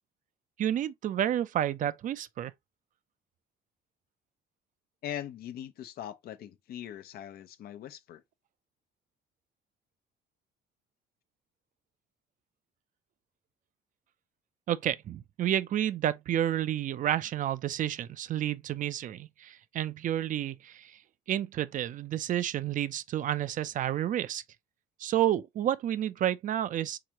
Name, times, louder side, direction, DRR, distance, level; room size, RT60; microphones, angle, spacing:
voice 1, 0.6-2.5 14.7-21.0 21.3-24.4 25.0-27.0, right 11 dB, 50° right, 0.5 m, -30 dB
voice 2, 5.0-8.2, left 11 dB, 65° left, 0.7 m, -41 dB
4.9 x 3.6 x 2.9 m
cardioid pair, 110°, 17 cm